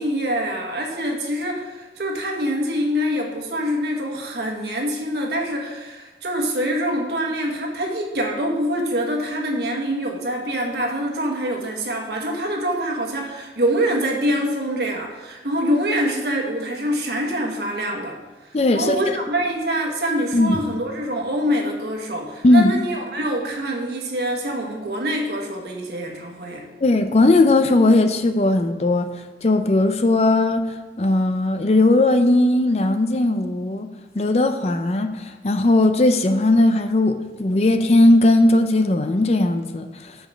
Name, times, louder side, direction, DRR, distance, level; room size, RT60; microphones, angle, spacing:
voice 1, 0.0-18.2 18.4-26.7, equal, 65° right, 0 dB, 1.4 m, -25 dB
voice 2, 18.5-19.2 20.3-20.6 22.4-22.7 26.8-29.1 29.4-33.9 34.1-40.2, left 2 dB, 35° left, 8 dB, 0.4 m, -18 dB
6.2 x 5.0 x 6.6 m, 1.2 s
head